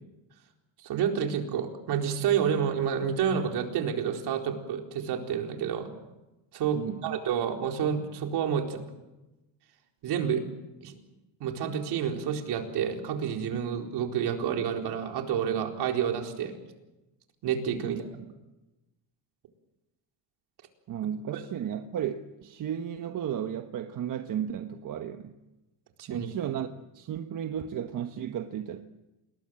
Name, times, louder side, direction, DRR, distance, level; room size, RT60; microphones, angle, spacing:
voice 1, 0.8-5.9 6.5-8.8 10.0-10.4 10.8-11.0 11.4-16.6 17.4-18.1 21.3-21.4 26.0-26.3, right 8 dB, 65° right, 4.3 m, -29 dB
voice 2, 6.7-7.2 17.8-18.0 20.9-25.4 26.1-26.7 26.9-28.8, right 9 dB, 45° right, 1.3 m, -34 dB
28.0 x 20.5 x 7.7 m
cardioid pair, 130°, 42 cm